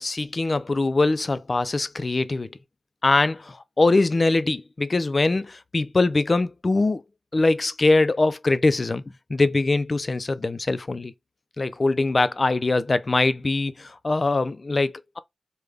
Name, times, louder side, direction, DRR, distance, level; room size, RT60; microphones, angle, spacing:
voice 1, 0.0-2.6 3.0-7.0 7.3-9.0 9.3-11.1 11.6-15.2, left 3 dB, 50° left, 0.4 m, -22 dB
3.3 x 2.2 x 3.4 m
cardioid pair, 50°, 0 cm